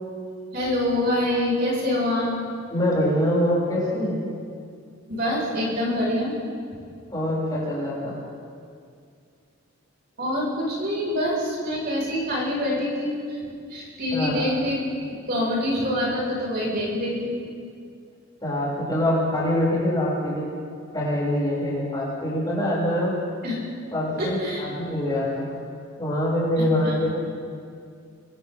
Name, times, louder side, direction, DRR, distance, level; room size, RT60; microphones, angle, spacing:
voice 1, 0.5-2.4 5.1-6.3 10.2-17.3 23.4-23.6 24.2-24.6 26.6-27.0, left 1 dB, 45° right, -4 dB, 6.6 m, -26 dB
voice 2, 2.7-4.2 7.1-8.1 14.1-14.4 18.4-20.5 20.9-23.1 23.9-25.5 26.0-27.3, left 1 dB, 20° left, -7 dB, 7.7 m, -24 dB
30.0 x 25.0 x 4.0 m, 2.3 s
head